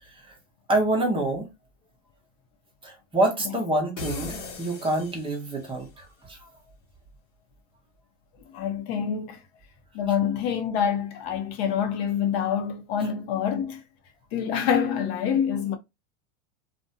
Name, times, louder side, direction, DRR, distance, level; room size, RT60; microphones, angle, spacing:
voice 1, 0.7-1.5 2.8-6.5 10.1-10.2, right 1 dB, 15° right, 0.7 m, -27 dB
sound 1, 4.0-5.8, left 5 dB, 90° left, 0.9 m, -38 dB
voice 2, 8.5-9.4 9.9-13.8 14.3-15.8, left 8 dB, 60° left, 0.6 m, -26 dB
2.5 x 2.1 x 2.5 m
supercardioid pair, 120°, 35 cm